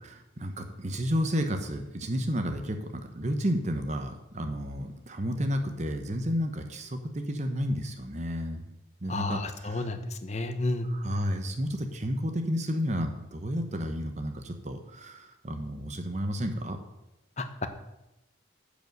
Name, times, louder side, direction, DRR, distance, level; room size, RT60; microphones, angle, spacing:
voice 1, 0.0-8.6 9.0-9.9 10.8-16.8, equal, 35° right, 6 dB, 0.9 m, -31 dB
voice 2, 9.1-10.9 17.4-17.7, left 2 dB, 35° left, 8 dB, 0.9 m, -31 dB
10.5 x 5.1 x 7.8 m, 0.92 s
head